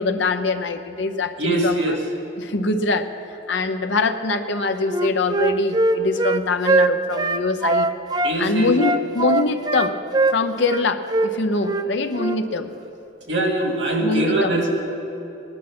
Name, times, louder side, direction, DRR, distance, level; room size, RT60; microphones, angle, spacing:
voice 1, 0.0-2.0 2.4-3.1 3.5-7.9 8.4-10.0 10.3-12.7 14.0-14.6, left 3 dB, 70° left, 7 dB, 0.8 m, -23 dB
voice 2, 1.4-2.0 8.2-8.7 13.3-14.7, right 1 dB, 65° right, -1 dB, 2.4 m, -22 dB
Wind instrument woodwind instrument, 4.9-8.3 8.8-10.8 11.1-11.3 11.6-11.9 12.1-12.4, right 2 dB, 20° right, 0.4 m, -21 dB
18.5 x 11.0 x 6.1 m, 2.9 s
head